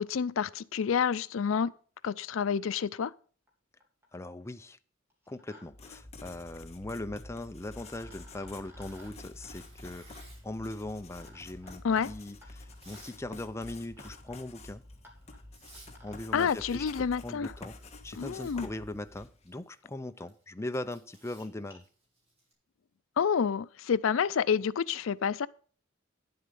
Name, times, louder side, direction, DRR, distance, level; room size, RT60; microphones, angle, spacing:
voice 1, 0.0-1.7 2.0-3.1 11.8-12.1 16.3-17.5 18.2-18.7 23.2-25.5, left 7 dB, 80° left, 0.4 m, -28 dB
sound 1, 3.5-3.6 3.8-4.3 5.1-5.6 5.9-6.0 7.3-7.4 7.8-16.5 17.8-17.9 18.7-18.8 19.5-19.6 19.8-19.9 20.2-20.3 20.6-20.8 21.2-21.8, left 1 dB, 10° right, 3.2 m, -59 dB
voice 2, 4.1-4.8 5.3-14.8 16.0-17.8 18.0-21.8, left 1 dB, 15° left, 0.5 m, -40 dB
Writing, 5.6-19.5, left 2 dB, 35° left, 1.4 m, -49 dB
Tearing, 8.8-10.6 11.3-13.2 13.5-13.9 14.3-14.5 15.2-15.3 15.5-15.9 16.2-16.7 17.0-17.1 17.3-22.5, right 2 dB, 30° right, 4.9 m, -58 dB
10.0 x 7.8 x 5.3 m
head